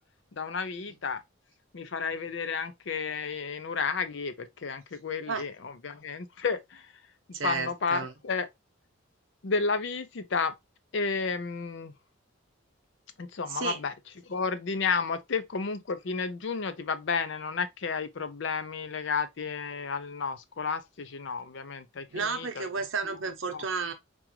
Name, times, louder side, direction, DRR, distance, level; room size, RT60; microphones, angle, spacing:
voice 1, 0.3-1.2 1.7-6.9 7.3-8.5 9.4-10.6 10.9-11.9 13.2-13.9 14.2-22.7 23.0-23.6, left 5 dB, 60° left, 0.5 m, -32 dB
voice 2, 7.3-8.1 13.5-13.8 22.1-23.9, right 5 dB, 65° right, 0.8 m, -32 dB
4.8 x 2.4 x 2.8 m
head